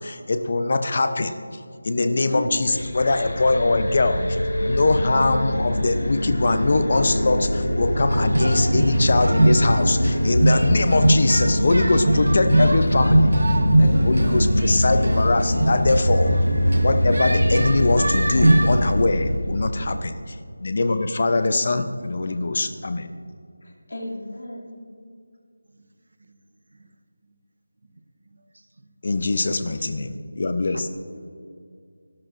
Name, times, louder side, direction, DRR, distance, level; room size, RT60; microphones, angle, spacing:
voice 1, 0.0-1.4 1.8-4.2 4.6-16.3 16.8-20.1 20.6-23.1 29.0-30.9, left 3 dB, 30° left, 10 dB, 0.6 m, -22 dB
voice 2, 2.0-2.6 3.5-3.9 12.1-12.8 13.8-14.3 19.8-20.0 22.3-22.4 23.6-24.8 31.1-31.3, left 1 dB, 50° left, -2 dB, 2.5 m, -33 dB
sound 1, 2.6-20.0, left 1 dB, 70° left, 2.1 m, -24 dB
sound 2, 6.4-16.1, right 2 dB, 25° right, 0.5 m, -33 dB
sound 3, 8.1-18.9, right 1 dB, 80° right, 1.2 m, -22 dB
voice 3, 28.2-28.9 30.7-30.8, right 2 dB, 55° right, 8 dB, 1.0 m, -43 dB
23.0 x 12.0 x 2.6 m, 2.3 s
figure-of-eight pair, 180°, 0 cm